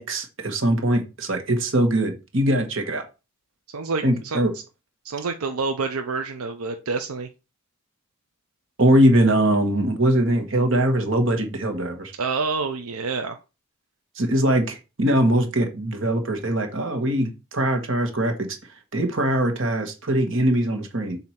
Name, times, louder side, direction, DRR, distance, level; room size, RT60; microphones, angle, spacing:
voice 1, 0.0-3.0 4.0-4.5 8.8-12.1 14.2-18.5 18.9-21.2, right 1 dB, 60° right, 5 dB, 1.4 m, -21 dB
voice 2, 3.7-4.4 5.0-7.3 12.2-13.4, right 4 dB, 90° right, 6 dB, 0.6 m, -27 dB
7.5 x 2.8 x 5.7 m, 0.29 s
head